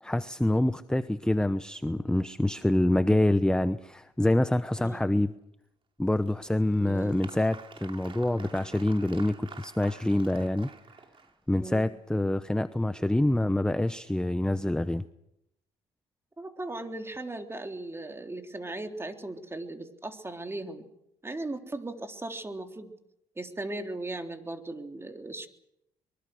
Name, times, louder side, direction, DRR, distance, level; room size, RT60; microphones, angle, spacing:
voice 1, 0.0-5.3 6.0-10.7 11.5-15.0, left 1 dB, 5° left, 0.9 m, -26 dB
voice 2, 4.8-5.1 6.8-7.3 11.6-11.9 16.4-20.9 21.2-22.9 23.4-25.5, right 2 dB, 20° right, 3.6 m, -38 dB
Applause, 6.2-11.6, right 5 dB, 40° right, 2.8 m, -49 dB
23.5 x 23.5 x 6.6 m
supercardioid pair, 70°, 13 cm